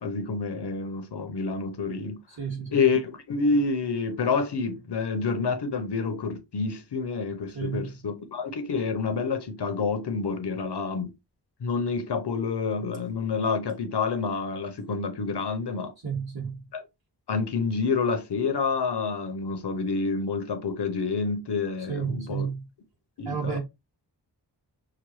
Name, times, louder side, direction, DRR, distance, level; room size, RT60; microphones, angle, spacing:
voice 1, 0.0-2.2 2.7-11.1 11.6-15.9 16.7-16.8 17.3-22.5 23.2-23.6, left 4 dB, 70° left, 0.8 m, -28 dB
voice 2, 2.4-2.8 7.5-7.9 16.0-16.6 21.9-22.6 23.3-23.6, right 6 dB, 60° right, 2.4 m, -31 dB
5.8 x 2.2 x 3.1 m
wide cardioid pair, 110°, 42 cm